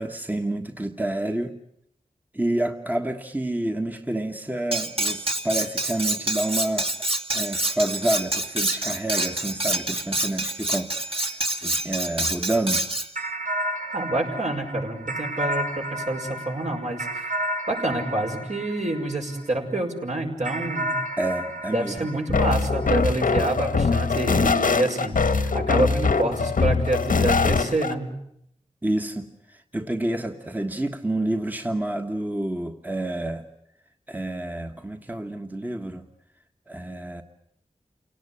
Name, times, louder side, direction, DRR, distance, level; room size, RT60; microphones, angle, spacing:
voice 1, 0.0-1.6 2.3-6.9 7.3-12.9 21.2-22.1 28.8-33.5 34.1-36.1 36.7-37.2, right 1 dB, 15° right, 5 dB, 1.4 m, -28 dB
Cutlery silverware, 4.7-13.1, right 1 dB, 45° right, 2.9 m, -27 dB
sound 1, 13.2-19.7 20.4-23.2, right 1 dB, 80° right, 5.5 m, -32 dB
voice 2, 13.9-17.1 17.7-20.9 21.7-28.1, right 2 dB, 60° right, 2 dB, 5.6 m, -27 dB
sound 2, 22.3-27.9, left 4 dB, 85° left, 1.4 m, -22 dB
29.0 x 18.0 x 9.9 m, 0.75 s
wide cardioid pair, 75°, 14 cm